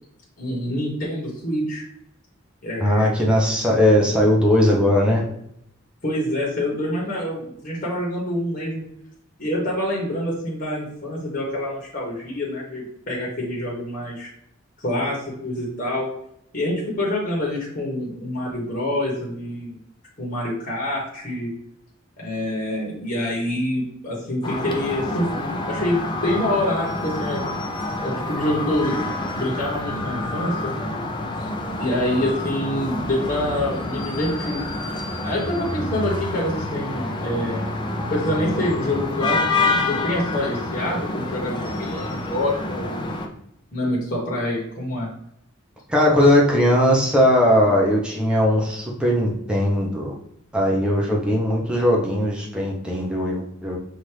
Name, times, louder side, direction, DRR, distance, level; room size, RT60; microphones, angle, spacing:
voice 1, 0.4-1.8 2.6-3.1 6.0-8.8 9.4-14.3 14.8-16.1 16.5-19.8 20.2-21.5 22.2-27.5 28.0-29.0 29.3-30.7 31.4-31.5 31.8-34.6 35.2-37.6 38.0-43.1 43.7-45.1, left 1 dB, 40° left, -4 dB, 1.0 m, -26 dB
voice 2, 2.8-5.2 45.9-50.1 50.5-53.8, left 1 dB, 5° right, -3 dB, 0.7 m, -19 dB
sound 1, 24.4-43.3, left 2 dB, 20° left, 0.4 m, -28 dB
5.8 x 2.5 x 3.2 m, 0.74 s
head